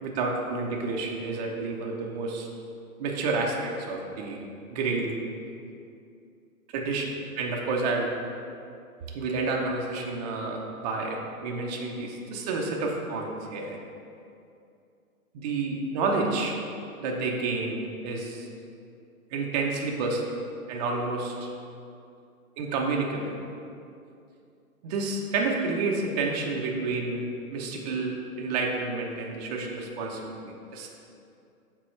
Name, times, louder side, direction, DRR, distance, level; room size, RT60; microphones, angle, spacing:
voice 1, 0.0-2.5 3.0-4.4 4.7-5.2 6.7-8.1 9.1-13.8 15.3-16.5 17.0-18.5 19.3-20.2 20.7-21.5 22.6-23.3 24.8-30.9, right 3 dB, 30° right, 0 dB, 0.6 m, -30 dB
6.4 x 4.2 x 4.4 m, 2.5 s
hypercardioid pair, 135°, 44 cm